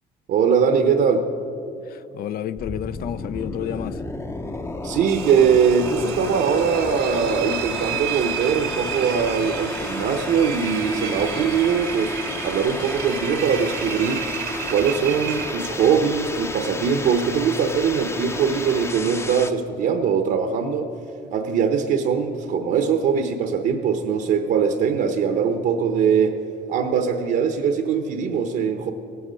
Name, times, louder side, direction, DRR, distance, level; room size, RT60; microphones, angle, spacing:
voice 1, 0.3-1.3 4.8-12.1 12.4-14.3 14.7-20.9 21.3-26.4 26.7-28.9, right 6 dB, 65° right, 0.8 m, -21 dB
voice 2, 1.8-4.0, left 10 dB, 60° left, 0.5 m, -30 dB
sound 1, 2.6-19.5, left 2 dB, 15° left, 0.7 m, -32 dB
Engine, 5.1-15.9, right 10 dB, 90° right, 1.5 m, -32 dB
18.0 x 7.9 x 6.3 m
cardioid pair, 110°, 17 cm